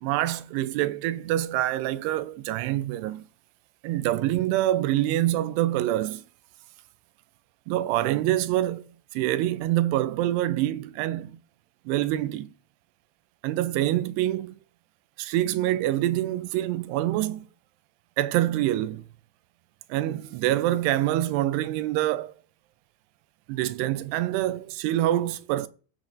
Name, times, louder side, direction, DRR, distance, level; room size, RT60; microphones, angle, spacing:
voice 1, 0.0-3.3 3.8-6.2 7.7-8.9 9.1-11.4 11.9-12.5 13.4-14.6 15.2-17.5 18.2-19.0 19.9-22.3 23.5-25.7, right 14 dB, 85° right, 2.6 m, -26 dB
14.5 x 7.4 x 2.5 m
omnidirectional pair, 4.8 m